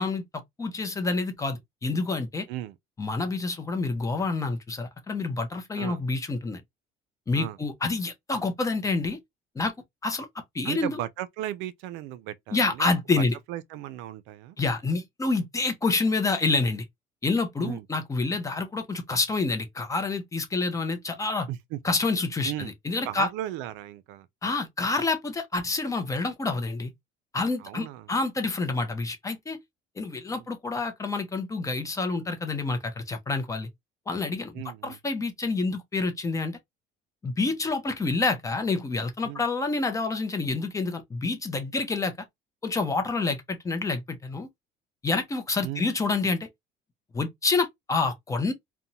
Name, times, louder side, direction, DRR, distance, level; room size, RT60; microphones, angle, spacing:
voice 1, 0.0-2.5 3.0-6.6 7.3-9.2 9.6-9.7 10.0-11.0 12.5-13.4 14.6-16.9 17.2-21.5 21.8-23.3 24.4-26.9 27.3-29.6 30.0-33.7 34.1-36.6 37.2-42.3 42.6-44.5 45.0-46.5 47.1-48.5, left 3 dB, 15° left, 0.5 m, -28 dB
voice 2, 10.6-14.6 17.6-17.9 21.5-21.8 22.4-22.7 23.0-24.3 27.6-28.1 30.3-30.5 34.5-35.0 39.2-39.4 45.6-45.9, right 13 dB, 85° right, 0.4 m, -36 dB
2.6 x 2.1 x 2.7 m
cardioid pair, 130°, 19 cm